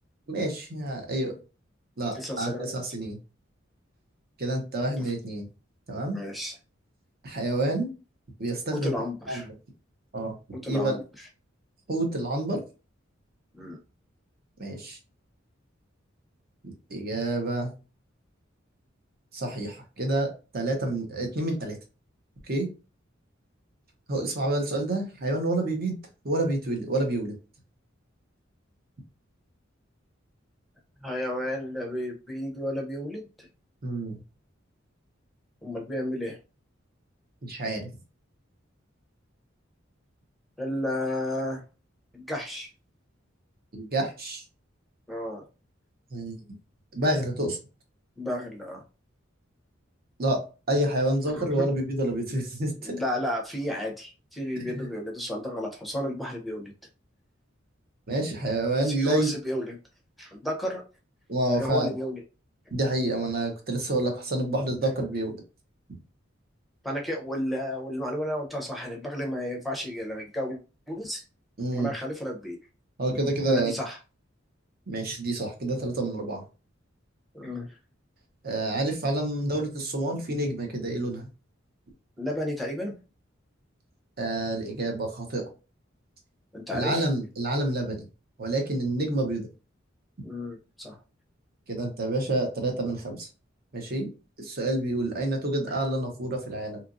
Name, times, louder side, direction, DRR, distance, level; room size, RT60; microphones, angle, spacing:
voice 1, 0.3-1.4 2.0-3.2 4.4-5.5 5.9-6.2 7.2-7.9 8.4-9.0 9.3-9.4 10.1-10.4 10.7-11.0 11.9-12.6 14.6-15.0 16.6-17.7 19.3-21.8 22.5-22.7 24.1-26.0 26.2-27.3 33.8-34.2 37.4-37.9 43.7-44.4 46.1-46.3 46.9-47.6 50.2-53.0 54.6-54.9 58.1-59.3 61.3-61.9 62.7-65.4 71.6-71.9 73.0-73.7 74.9-76.4 78.4-81.3 84.2-85.4 86.7-88.0 88.4-89.5 91.7-93.3 93.7-94.1 94.4-96.8, right 1 dB, 50° right, 3 dB, 0.8 m, -28 dB
voice 2, 2.1-2.7 5.0-5.1 6.1-6.5 8.7-9.5 10.5-11.3 13.5-13.8 31.0-33.2 35.6-36.4 40.6-41.6 42.1-42.7 45.1-45.4 48.2-48.8 51.3-51.6 52.8-56.7 58.8-59.7 60.2-60.8 61.5-62.2 66.8-70.6 70.9-71.2 71.7-72.6 73.5-74.0 77.3-77.7 82.2-82.9 86.5-87.0 90.2-91.0, equal, ahead, 0 dB, 0.7 m, -32 dB
2.9 x 2.5 x 2.5 m, 0.32 s
head